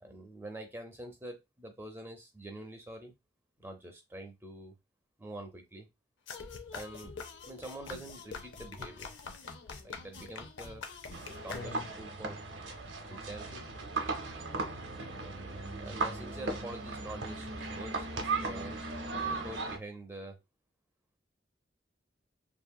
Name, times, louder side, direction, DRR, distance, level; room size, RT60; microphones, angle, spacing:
voice 1, 0.0-3.1 3.6-4.8 5.2-5.9 6.7-7.2 7.5-9.1 9.8-10.9 11.4-12.4 13.1-13.7 14.5-15.0 15.8-18.8 19.3-20.4, right 1 dB, 10° right, 0.6 m, -46 dB
sound 1, 6.3-12.1, left 4 dB, 80° left, 0.6 m, -44 dB
sound 2, 11.1-19.8, right 3 dB, 80° right, 0.7 m, -37 dB
2.8 x 2.8 x 2.2 m
head